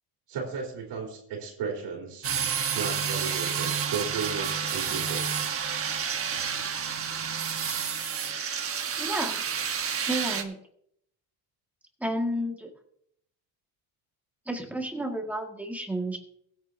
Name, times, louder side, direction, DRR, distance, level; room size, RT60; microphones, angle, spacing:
voice 1, 0.3-2.3 2.7-5.6, right 5 dB, 65° right, -1 dB, 3.5 m, -35 dB
sound 1, 2.2-10.4, right 7 dB, 30° right, 1.2 m, -30 dB
voice 2, 9.0-9.4 10.1-10.6 12.0-12.7 14.5-16.2, right 1 dB, 5° right, 1 dB, 1.9 m, -31 dB
22.5 x 8.8 x 2.8 m, 0.70 s
cardioid pair, 160°, 42 cm